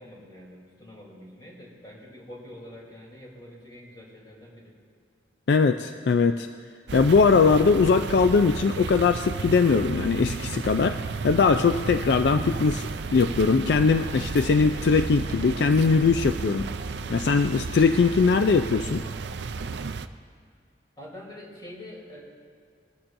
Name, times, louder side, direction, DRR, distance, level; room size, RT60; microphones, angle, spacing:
voice 1, 0.0-4.7 21.0-22.2, left 1 dB, 25° left, -4 dB, 3.2 m, -45 dB
voice 2, 5.5-6.5 6.9-11.0 11.2-16.7 17.1-19.0, left 4 dB, 65° left, 8 dB, 0.3 m, -21 dB
sound 1, 6.9-20.1, right 4 dB, 70° right, 0.5 m, -33 dB
20.5 x 13.0 x 2.6 m, 2.2 s
head